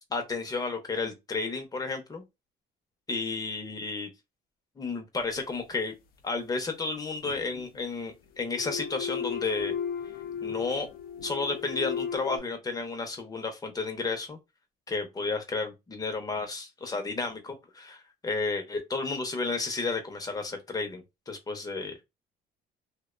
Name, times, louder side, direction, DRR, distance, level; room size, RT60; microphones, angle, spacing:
voice 1, 0.1-2.2 3.1-4.1 4.8-5.9 6.2-9.7 10.4-10.9 11.2-14.4 14.9-22.0, left 3 dB, 20° left, 0.7 m, -32 dB
sound 1, 5.2-5.3 7.2-7.8 8.4-12.4, left 8 dB, 60° left, 0.5 m, -35 dB
2.5 x 2.2 x 2.4 m
cardioid pair, 110°, 17 cm